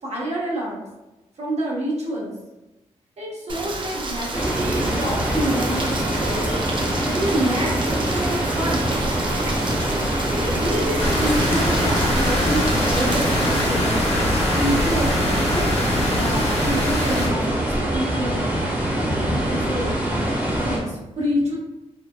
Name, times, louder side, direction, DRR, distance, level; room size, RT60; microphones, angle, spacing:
voice 1, 0.0-0.8 1.4-2.3 3.2-6.6 7.1-8.9 10.3-14.0 14.6-15.7 16.1-18.5 19.3-20.0 20.6-21.6, equal, 65° right, -4 dB, 1.0 m, -28 dB
Rain, 3.5-13.7, right 2 dB, 45° right, 0.5 m, -30 dB
sound 1, 4.3-20.8, right 1 dB, 15° right, 1.0 m, -24 dB
sound 2, 11.0-17.3, left 1 dB, 60° left, 1.0 m, -23 dB
voice 2, 17.9-19.9 20.3-20.9, left 3 dB, 45° left, 4 dB, 0.4 m, -35 dB
3.2 x 2.0 x 2.2 m, 1.0 s
cardioid pair, 60°, 12 cm